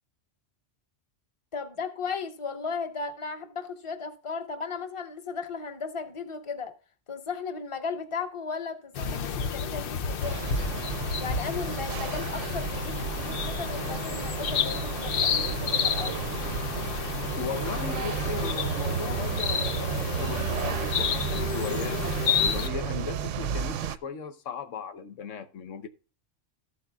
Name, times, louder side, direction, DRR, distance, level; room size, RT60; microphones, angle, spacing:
voice 1, 1.5-6.7 7.1-10.6 11.2-16.3, left 5 dB, 25° left, 1.0 m, -36 dB
sound 1, 9.0-22.7, left 7 dB, 55° left, 0.7 m, -31 dB
sound 2, 10.2-24.0, right 8 dB, 80° right, 0.9 m, -33 dB
voice 2, 17.4-25.9, left 6 dB, 85° left, 1.2 m, -37 dB
14.0 x 8.2 x 2.3 m
omnidirectional pair, 1.3 m